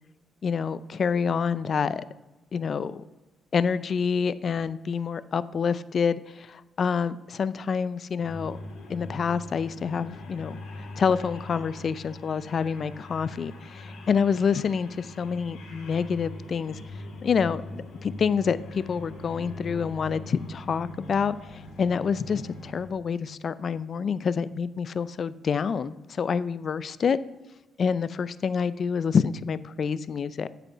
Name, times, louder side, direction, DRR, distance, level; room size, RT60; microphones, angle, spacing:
voice 1, 0.4-2.1 2.5-3.0 3.5-8.6 8.9-16.8 17.2-27.2 27.8-30.5, left 6 dB, 40° left, 16 dB, 0.4 m, -27 dB
sound 1, 8.2-22.8, left 2 dB, 85° left, 3.3 m, -42 dB
8.4 x 8.1 x 5.5 m, 1.1 s
cardioid pair, 140°, 0 cm